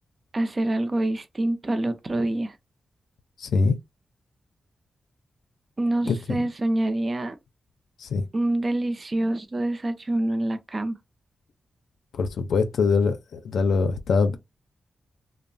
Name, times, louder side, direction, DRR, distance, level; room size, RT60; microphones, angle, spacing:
voice 1, 0.3-2.5 5.8-7.4 8.3-10.9, right 1 dB, 30° right, 0.4 m, -26 dB
voice 2, 3.4-3.8 6.1-6.4 8.0-8.2 12.1-14.4, left 4 dB, 90° left, 0.4 m, -23 dB
2.9 x 2.0 x 2.5 m
wide cardioid pair, 115°, 0 cm